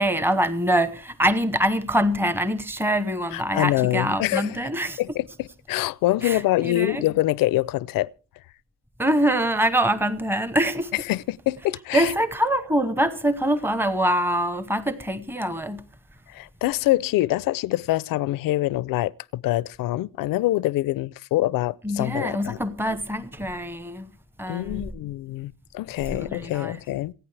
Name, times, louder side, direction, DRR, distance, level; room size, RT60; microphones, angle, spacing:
voice 1, 0.0-5.0 6.2-7.0 9.0-10.9 11.9-15.9 21.8-24.1 24.4-24.9 26.1-26.8, right 1 dB, 5° right, 0.9 m, -24 dB
voice 2, 3.3-4.5 5.0-8.1 11.1-12.1 16.3-22.6 24.5-27.1, left 16 dB, 75° left, 0.6 m, -25 dB
27.5 x 9.3 x 3.3 m
cardioid pair, 145°, 34 cm